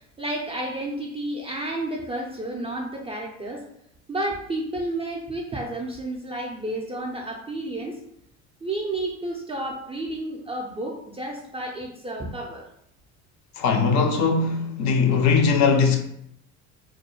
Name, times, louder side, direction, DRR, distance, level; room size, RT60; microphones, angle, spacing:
voice 1, 0.0-3.6 4.1-8.0 8.6-12.7, right 1 dB, 15° right, 0.3 m, -31 dB
voice 2, 13.6-16.0, left 5 dB, 45° left, 0.4 m, -20 dB
2.3 x 2.1 x 3.0 m
hypercardioid pair, 70°, 40 cm